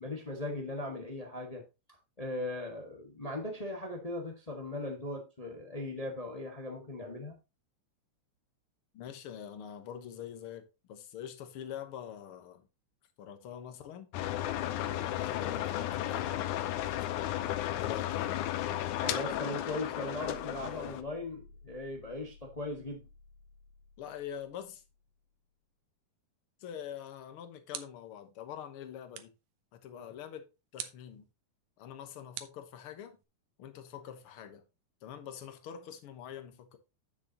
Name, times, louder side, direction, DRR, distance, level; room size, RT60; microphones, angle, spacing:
voice 1, 0.0-1.6 2.2-7.4 19.0-23.0, left 2 dB, 25° left, 0.7 m, -38 dB
voice 2, 8.9-12.7 13.2-14.1 14.8-17.0 17.8-18.5 24.0-24.8 26.6-29.3 29.7-30.5 30.7-31.3 31.8-33.2 33.6-34.6 35.0-36.8, left 9 dB, 60° left, 1.7 m, -45 dB
sound 1, 14.1-21.0, left 13 dB, 80° left, 2.1 m, -34 dB
sound 2, 20.2-25.3, equal, 70° right, 2.1 m, -56 dB
sound 3, 27.0-28.2 29.1-29.5 30.8-31.1 32.3-33.2, right 11 dB, 90° right, 2.5 m, -45 dB
9.6 x 8.1 x 2.9 m
omnidirectional pair, 3.6 m